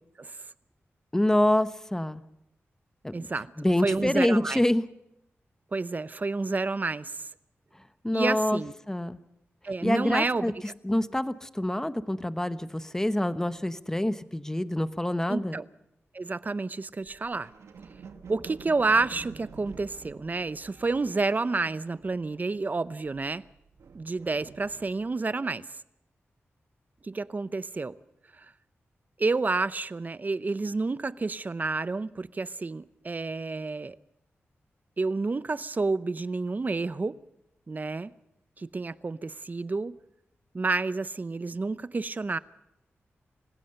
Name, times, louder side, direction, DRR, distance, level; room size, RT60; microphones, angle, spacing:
voice 1, 1.1-2.2 3.0-3.1 3.6-4.8 8.0-8.6 8.9-9.2 9.8-10.5 10.8-15.6, left 1 dB, 10° left, 1.0 m, -26 dB
voice 2, 3.1-3.5 3.8-4.6 5.7-7.3 8.1-8.7 9.6-10.5 15.3-15.6 16.1-17.5 18.3-23.4 23.9-25.6 27.0-28.0 28.4-28.5 29.2-34.0 35.0-37.2 37.7-38.1 38.6-40.0 40.5-42.4, right 3 dB, 40° right, 0.7 m, -29 dB
sound 1, 17.0-22.6 22.9-25.2, right 5 dB, 90° right, 1.6 m, -49 dB
27.0 x 16.0 x 6.7 m
wide cardioid pair, 85°, 5 cm